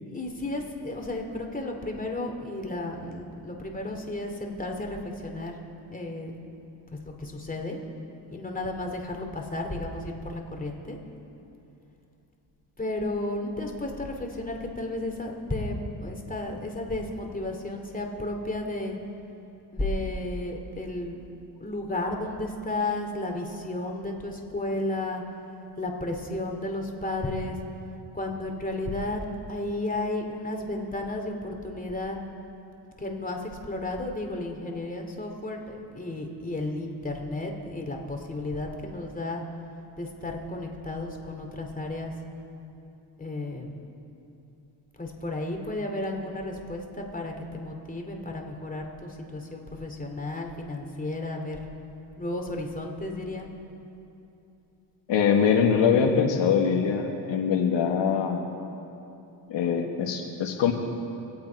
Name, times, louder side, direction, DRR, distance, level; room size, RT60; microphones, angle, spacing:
voice 1, 0.0-5.6 5.9-6.3 7.2-7.8 8.3-11.0 12.8-19.0 19.7-21.2 21.6-25.2 25.8-27.6 28.1-32.2 33.0-39.4 40.0-42.1 43.2-43.7 45.0-51.6 52.2-53.5, left 2 dB, 20° left, 2 dB, 2.6 m, -33 dB
voice 2, 55.1-58.4 59.5-60.7, left 7 dB, 70° left, 2 dB, 1.5 m, -23 dB
25.0 x 8.5 x 4.6 m, 2.8 s
cardioid pair, 80°, 45 cm